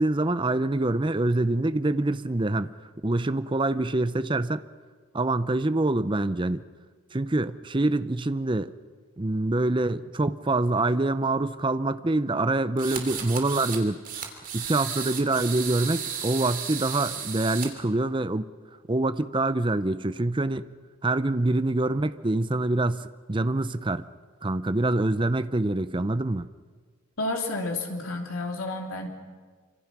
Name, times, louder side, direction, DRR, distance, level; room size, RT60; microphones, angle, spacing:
voice 1, 0.0-2.7 3.0-4.6 5.1-6.6 7.1-8.7 9.2-14.0 14.5-18.5 18.9-20.7 21.0-24.1 24.4-26.5, right 2 dB, 20° right, 13 dB, 0.6 m, -25 dB
sound 1, 12.8-13.8 14.1-17.7, right 8 dB, 40° right, 2.9 m, -34 dB
voice 2, 27.2-29.1, left 2 dB, 70° left, 1 dB, 3.2 m, -30 dB
26.0 x 26.0 x 6.1 m, 1.6 s
head